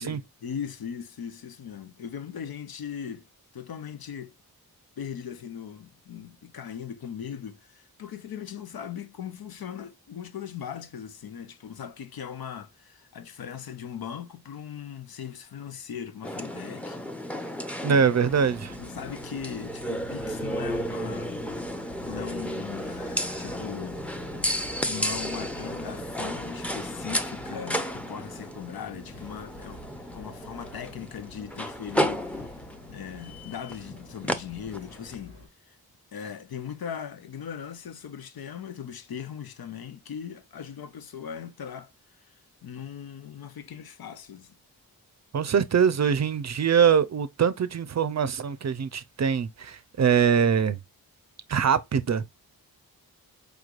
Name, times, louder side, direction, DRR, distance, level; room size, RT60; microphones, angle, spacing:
voice 1, 0.0-3.3 3.5-4.3 5.0-17.6 17.9-18.0 18.8-24.3 24.8-32.5 32.9-35.4 35.7-35.8 36.1-41.9 42.3-42.4 42.6-44.6, left 8 dB, 75° left, 0.7 m, -39 dB
sound 1, 16.2-35.2, equal, 5° left, 0.6 m, -33 dB
voice 2, 17.8-18.8 45.3-50.8 51.5-52.2, right 7 dB, 45° right, 0.5 m, -23 dB
sound 2, 18.2-35.5, left 2 dB, 90° left, 2.0 m, -47 dB
4.8 x 3.2 x 2.4 m
cardioid pair, 70°, 37 cm